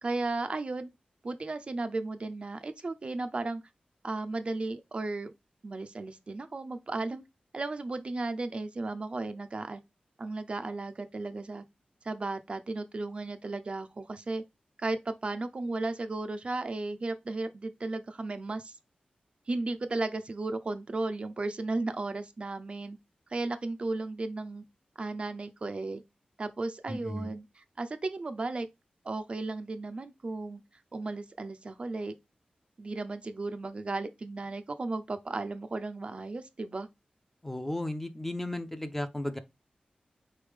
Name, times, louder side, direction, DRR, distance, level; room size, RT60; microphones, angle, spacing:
voice 1, 0.0-0.9 1.2-3.6 4.0-5.3 5.6-7.2 7.5-9.8 10.2-11.6 12.0-14.4 14.8-18.8 19.5-23.0 23.3-24.6 25.0-26.0 26.4-27.4 27.8-28.7 29.0-30.6 30.9-32.1 32.8-36.9, right 3 dB, 40° right, 0.4 m, -35 dB
voice 2, 26.9-27.3 37.4-39.4, left 1 dB, 10° left, 0.5 m, -34 dB
4.3 x 3.2 x 3.4 m
wide cardioid pair, 115°, 3 cm